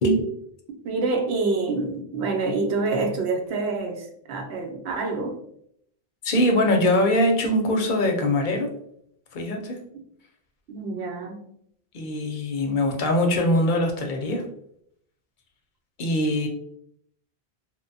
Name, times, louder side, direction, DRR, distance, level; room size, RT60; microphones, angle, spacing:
voice 1, 0.0-0.3 6.2-8.7 9.3-9.8 11.9-14.4 16.0-16.5, left 1 dB, 60° left, 2 dB, 0.6 m, -22 dB
voice 2, 0.8-5.4 10.7-11.5, right 3 dB, 85° right, 3 dB, 0.9 m, -27 dB
2.9 x 2.1 x 2.6 m, 0.70 s
omnidirectional pair, 1.1 m